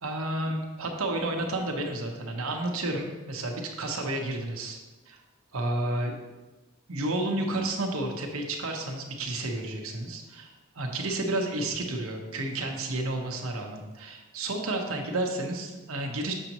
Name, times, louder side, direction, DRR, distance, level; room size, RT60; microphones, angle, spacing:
voice 1, 0.0-4.8 5.1-5.2 5.5-6.1 6.9-10.5 10.8-16.3, right 1 dB, 80° right, 2 dB, 1.1 m, -31 dB
7.0 x 6.6 x 3.0 m, 1.2 s
head